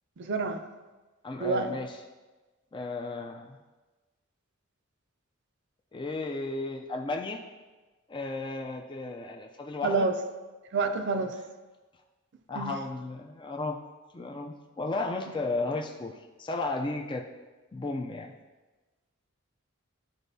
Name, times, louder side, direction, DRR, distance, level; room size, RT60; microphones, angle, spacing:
voice 1, 0.2-0.6 1.4-1.7 9.8-10.1 10.7-11.3 12.5-12.8, right 4 dB, 55° right, 7 dB, 0.6 m, -28 dB
voice 2, 1.2-2.0 2.7-3.6 5.9-7.4 8.1-10.1 10.8-11.5 12.5-13.8 14.1-17.2 17.7-18.3, left 3 dB, 25° left, 2 dB, 0.4 m, -34 dB
12.0 x 4.5 x 2.7 m, 1.2 s
head